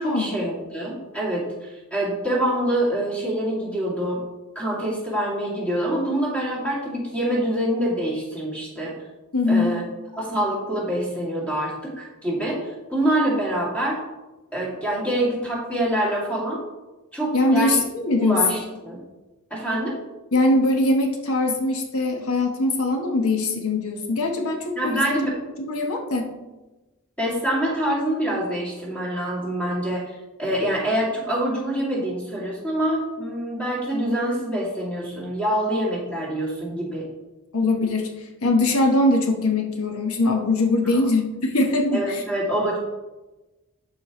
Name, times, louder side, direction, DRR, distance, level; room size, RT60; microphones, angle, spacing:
voice 1, 0.0-4.2 4.6-8.9 9.5-9.8 10.2-14.0 14.5-16.6 17.1-17.8 18.2-19.0 19.5-19.9 24.8-25.3 27.2-37.0 40.8-41.0 41.9-42.8, right 1 dB, 5° left, -6 dB, 2.2 m, -25 dB
voice 2, 9.3-9.7 17.3-18.4 20.3-26.3 37.5-42.2, left 2 dB, 80° left, 2 dB, 1.1 m, -22 dB
11.5 x 4.9 x 3.0 m, 1.1 s
head